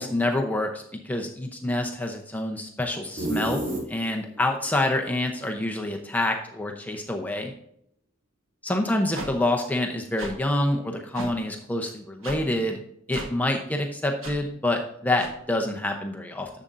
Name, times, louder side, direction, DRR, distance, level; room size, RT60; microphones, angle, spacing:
voice 1, 0.0-7.5 8.6-12.8 13.1-16.5, left 1 dB, 10° left, 2 dB, 0.7 m, -27 dB
sound 1, 3.2-4.4, right 2 dB, 40° right, 2.7 m, -30 dB
sound 2, 9.1-9.3 10.2-10.3 11.1-11.3 12.2-12.4 13.1-13.3 14.2-14.4 15.2-15.3, right 2 dB, 85° right, 1.6 m, -35 dB
10.5 x 7.4 x 2.6 m, 0.71 s
head